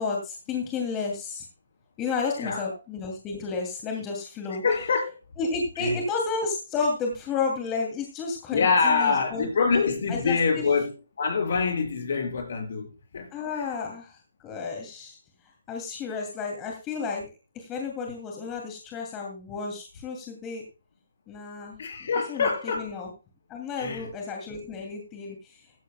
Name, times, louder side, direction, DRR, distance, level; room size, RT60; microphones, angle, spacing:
voice 1, 0.0-1.4 2.0-4.6 5.4-9.8 10.1-10.6 13.3-15.2 15.7-20.6 21.3-21.8 22.3-23.1 23.5-25.7, left 4 dB, 20° left, 2.5 m, -32 dB
voice 2, 4.6-5.1 5.8-6.0 8.5-10.9 11.2-13.3 21.8-22.9 23.8-24.1, left 5 dB, 55° left, 5.7 m, -25 dB
15.0 x 14.5 x 2.2 m
figure-of-eight pair, 145°, 0 cm